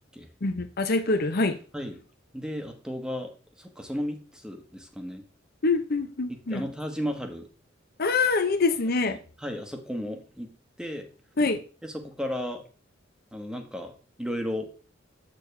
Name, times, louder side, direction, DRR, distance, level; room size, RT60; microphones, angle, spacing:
voice 1, 0.4-1.6 5.6-6.6 8.0-9.2 11.4-11.6, left 3 dB, 50° left, 0.7 m, -25 dB
voice 2, 2.3-3.3 3.6-5.2 6.3-7.5 9.1-10.5 10.8-11.1 11.8-12.6 13.3-14.7, equal, 5° right, 1.1 m, -34 dB
8.0 x 6.8 x 3.3 m
head